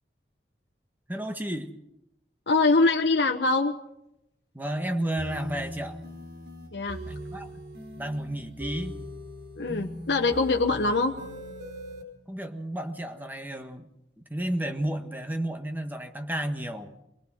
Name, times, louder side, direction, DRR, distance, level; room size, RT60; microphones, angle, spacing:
voice 1, 1.1-1.7 4.5-6.0 7.1-7.6 8.0-8.9 12.3-13.9 14.3-17.0, right 1 dB, 10° right, 6 dB, 1.5 m, -32 dB
voice 2, 2.5-3.7 6.7-7.0 9.6-11.1, left 3 dB, 75° left, 2 dB, 1.2 m, -23 dB
sound 1, 5.2-12.0, left 1 dB, 75° right, 4.6 m, -40 dB
23.5 x 19.5 x 6.3 m, 0.84 s
head